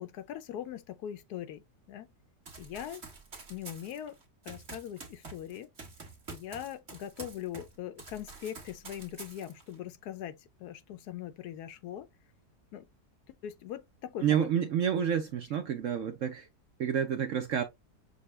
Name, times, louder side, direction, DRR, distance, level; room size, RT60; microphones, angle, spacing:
voice 1, 0.0-2.1 2.6-3.0 3.5-4.2 4.4-5.7 6.3-12.1 12.7-12.9 13.4-14.5, left 11 dB, 75° left, 1.0 m, -41 dB
Run, 2.5-7.7 8.0-9.7, right 4 dB, 40° right, 1.7 m, -47 dB
voice 2, 14.2-16.5 16.8-17.6, right 8 dB, 65° right, 0.8 m, -29 dB
6.6 x 2.2 x 3.1 m
omnidirectional pair, 1.8 m